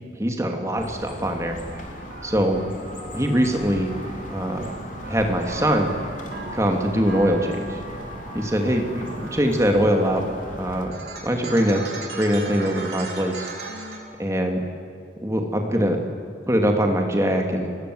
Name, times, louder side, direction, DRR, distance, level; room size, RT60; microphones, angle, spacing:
voice 1, 0.2-1.6 2.2-2.6 3.1-3.9 4.3-4.7 5.1-5.9 6.5-7.8 8.3-10.2 10.6-10.9 11.2-11.8 12.2-13.5 14.2-14.6 15.2-16.0 16.5-17.7, equal, 15° right, 3 dB, 2.7 m, -22 dB
sound 1, 0.8-10.9, left 1 dB, 45° left, 3.5 m, -39 dB
sound 2, 1.7-14.0, right 2 dB, 70° right, 4.5 m, -38 dB
30.0 x 19.5 x 8.0 m, 2.3 s
head